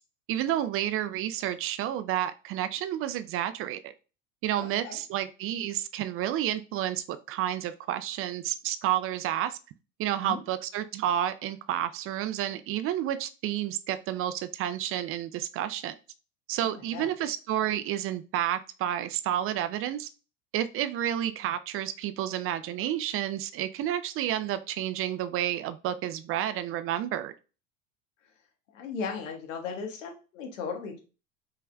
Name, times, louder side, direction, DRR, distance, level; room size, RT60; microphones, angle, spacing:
voice 1, 0.3-3.9 4.4-9.6 10.0-15.9 16.5-20.1 20.5-27.3, right 11 dB, 35° right, 12 dB, 0.4 m, -30 dB
voice 2, 4.5-5.0 10.2-10.4 16.6-17.1 28.2-28.3 28.7-31.0, left 5 dB, 75° left, 3 dB, 1.4 m, -37 dB
5.3 x 3.3 x 2.3 m, 0.33 s
hypercardioid pair, 80°, 39 cm